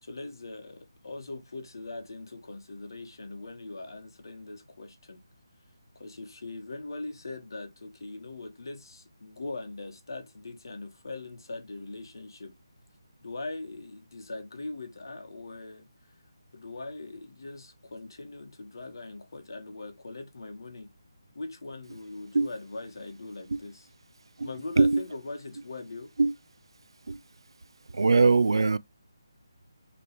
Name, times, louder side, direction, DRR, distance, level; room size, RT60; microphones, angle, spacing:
voice 1, 0.0-5.2 6.0-12.5 13.2-15.8 16.5-20.9 21.3-23.9 24.4-26.1, left 2 dB, 55° left, 1.6 m, -41 dB
voice 2, 27.9-28.8, right 3 dB, 75° right, 0.5 m, -21 dB
5.9 x 3.3 x 4.9 m
hypercardioid pair, 175°, 2 cm